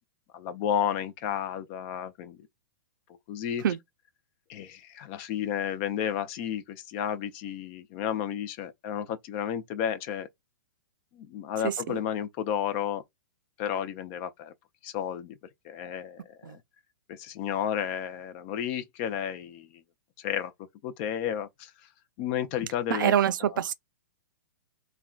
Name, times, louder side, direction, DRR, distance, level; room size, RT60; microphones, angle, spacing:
voice 1, 0.3-2.4 3.3-3.6 4.5-10.3 11.1-13.0 13.6-14.5 14.8-15.4 15.6-16.6 17.1-19.7 20.2-20.5 20.8-21.7 22.2-23.1, left 9 dB, 35° left, 0.5 m, -32 dB
voice 2, 11.6-12.0 16.4-16.6 22.9-23.7, right 9 dB, 70° right, 0.4 m, -25 dB
3.5 x 2.2 x 2.3 m
hypercardioid pair, 145°, 11 cm